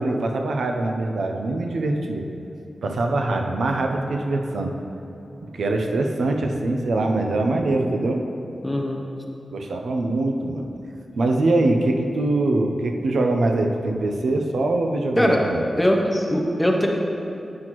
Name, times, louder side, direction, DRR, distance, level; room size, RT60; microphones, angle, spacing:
voice 1, 0.0-2.2 2.8-4.7 5.4-8.2 9.5-10.7 11.2-15.6, right 2 dB, 80° right, 3 dB, 0.6 m, -23 dB
voice 2, 8.6-9.0 15.2-15.4 15.8-16.9, equal, 10° left, 0 dB, 0.7 m, -20 dB
9.5 x 5.9 x 3.0 m, 2.9 s
wide cardioid pair, 155°, 0 cm